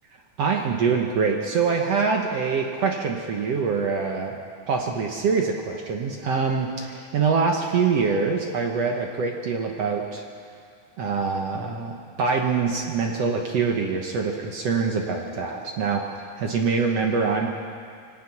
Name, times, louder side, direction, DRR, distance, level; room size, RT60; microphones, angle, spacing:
voice 1, 0.4-4.4 4.7-10.3 11.0-16.0 16.4-17.5, right 5 dB, 65° right, 2 dB, 1.7 m, -24 dB
24.0 x 17.5 x 6.1 m, 2.3 s
omnidirectional pair, 4.1 m